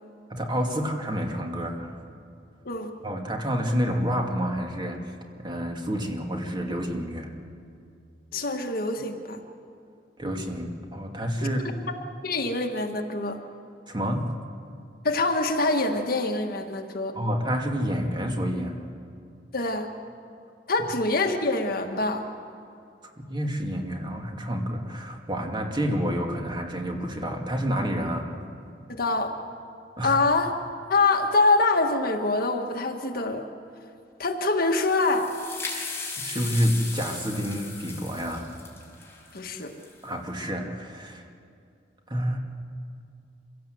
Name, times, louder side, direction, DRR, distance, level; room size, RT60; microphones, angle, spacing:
voice 1, 0.3-1.9 3.0-5.0 5.4-7.3 10.2-11.8 13.9-14.3 17.1-18.8 23.2-28.4 30.0-30.2 36.2-38.5 40.0-41.2 42.1-42.4, equal, 25° right, 2 dB, 2.3 m, -28 dB
voice 2, 8.3-9.4 11.9-12.0 12.2-13.4 15.0-17.1 19.5-19.9 20.7-22.3 28.9-29.3 30.0-30.5 30.9-33.4 34.2-35.3 39.3-39.7, left 3 dB, 55° left, 4 dB, 1.7 m, -25 dB
sound 1, 34.6-40.1, left 4 dB, 15° left, 4.6 m, -37 dB
26.0 x 17.0 x 7.9 m, 2.4 s
head